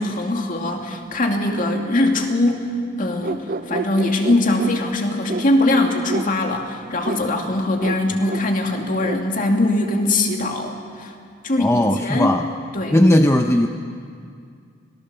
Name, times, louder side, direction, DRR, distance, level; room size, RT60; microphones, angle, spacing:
voice 1, 0.0-2.7 3.0-11.1 11.4-12.4 12.7-13.0, left 1 dB, 45° left, 2 dB, 2.4 m, -21 dB
sound 1, 3.2-4.7 5.3-5.5 6.1-6.3 7.0-7.2 7.8-8.0 8.3-8.5 9.0-9.2, right 3 dB, 50° right, 0.6 m, -28 dB
voice 2, 11.6-12.5 12.9-13.7, left 1 dB, 15° left, 4 dB, 0.7 m, -17 dB
25.5 x 18.5 x 6.9 m, 2.2 s
head